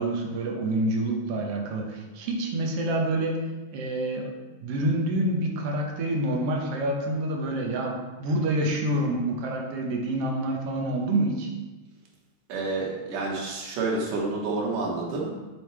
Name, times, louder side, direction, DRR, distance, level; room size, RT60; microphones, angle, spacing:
voice 1, 0.0-3.4 3.7-11.5, right 1 dB, 65° right, 1 dB, 1.7 m, -27 dB
voice 2, 12.5-15.3, right 3 dB, 85° right, -3 dB, 2.9 m, -29 dB
7.5 x 7.0 x 3.3 m, 1.2 s
omnidirectional pair, 3.5 m